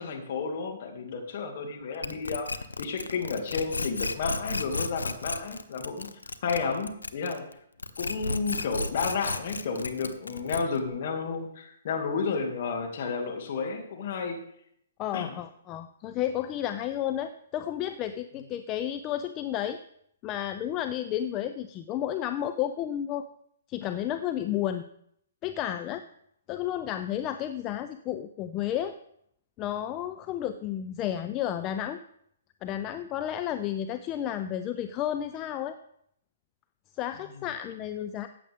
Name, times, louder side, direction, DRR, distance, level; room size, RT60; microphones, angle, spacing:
voice 1, 0.0-2.5 2.8-6.1 6.4-7.5 8.0-14.4 15.1-15.3, left 5 dB, 50° left, 2 dB, 2.4 m, -31 dB
sound 1, 2.0-7.5 7.8-10.9, left 3 dB, 85° left, 0.7 m, -33 dB
voice 2, 15.0-19.8 20.2-23.2 23.7-24.9 25.4-26.0 26.5-29.0 29.6-32.0 32.6-35.8 36.9-38.3, left 11 dB, 25° left, 9 dB, 0.5 m, -32 dB
14.5 x 8.5 x 3.6 m, 0.71 s
figure-of-eight pair, 125°, 0 cm